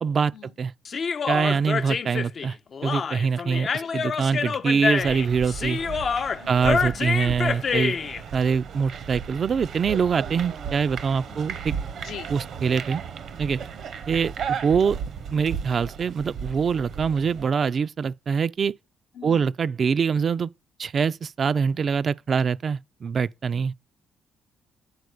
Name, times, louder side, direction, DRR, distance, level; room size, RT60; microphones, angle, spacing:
voice 1, 0.0-0.7 1.3-2.6 2.8-5.8 6.5-8.0 8.3-11.7 12.3-13.0 13.4-13.6 14.1-15.0 15.3-18.7 19.2-20.5 20.8-23.7, right 6 dB, 50° right, 0.4 m, -24 dB
Human voice, 0.8-8.2, left 6 dB, 45° left, 0.5 m, -27 dB
sound 1, 5.0-17.5, right 7 dB, 70° right, 0.9 m, -35 dB
voice 2, 12.0-12.3 19.2-19.5, left 9 dB, 80° left, 0.8 m, -42 dB
9.6 x 4.3 x 6.4 m
cardioid pair, 90°, 0 cm